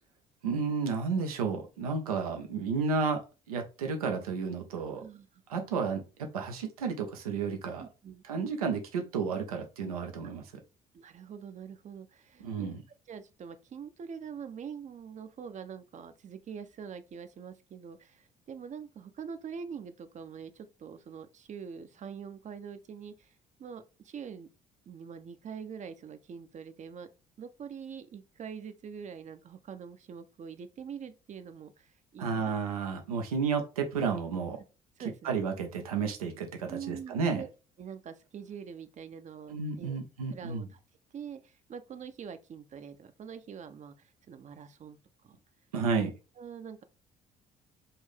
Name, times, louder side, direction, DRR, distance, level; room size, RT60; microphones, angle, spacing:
voice 1, 0.4-3.2 3.5-5.0 5.5-7.8 8.2-10.4 12.4-12.8 32.2-34.6 35.2-37.4 39.5-40.6 45.7-46.1, right 5 dB, 85° right, 0.6 m, -32 dB
voice 2, 7.8-8.2 10.9-12.7 13.1-23.3 23.6-24.5 24.9-27.1 27.4-32.5 35.0-35.4 36.7-37.5 37.8-40.0 40.3-40.8 41.1-45.0 45.2-45.3 46.0-46.1 46.4-46.8, right 7 dB, 40° right, 0.6 m, -44 dB
5.5 x 2.6 x 3.4 m
hypercardioid pair, 55°, 19 cm